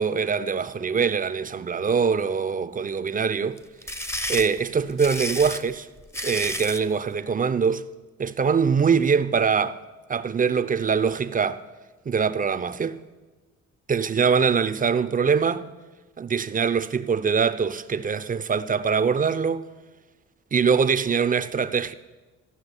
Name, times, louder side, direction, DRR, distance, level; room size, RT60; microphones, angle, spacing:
voice 1, 0.0-3.6 4.3-5.9 6.2-7.8 8.2-9.8 10.1-11.6 12.1-13.0 13.9-15.7 16.2-19.7 20.5-21.9, right 6 dB, 25° right, 0.6 m, -23 dB
sound 1, 3.6-6.9, left 1 dB, 10° left, 0.7 m, -31 dB
14.0 x 6.1 x 9.7 m
cardioid pair, 90°, 30 cm